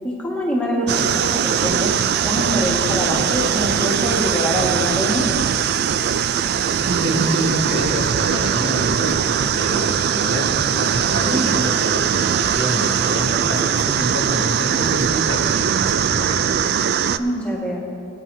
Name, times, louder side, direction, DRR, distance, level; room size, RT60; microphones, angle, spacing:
voice 1, 0.0-1.9 2.2-5.3 11.2-11.6 17.2-17.8, equal, 5° left, -4 dB, 1.7 m, -24 dB
sound 1, 0.9-17.2, right 8 dB, 55° right, 0.3 m, -20 dB
voice 2, 6.8-16.5, right 1 dB, 75° right, -3 dB, 2.1 m, -26 dB
22.0 x 9.1 x 2.8 m, 2.6 s
head